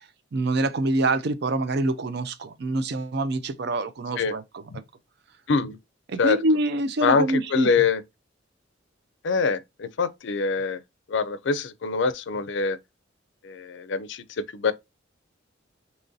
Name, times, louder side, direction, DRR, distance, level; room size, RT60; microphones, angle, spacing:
voice 1, 0.3-4.6 6.1-7.7, right 2 dB, 55° right, 0.4 m, -25 dB
voice 2, 5.5-5.8 6.2-6.4 7.0-8.0 9.2-10.8 11.1-12.8 13.4-14.2 14.5-14.7, left 5 dB, 65° left, 0.4 m, -24 dB
3.0 x 2.6 x 3.8 m
head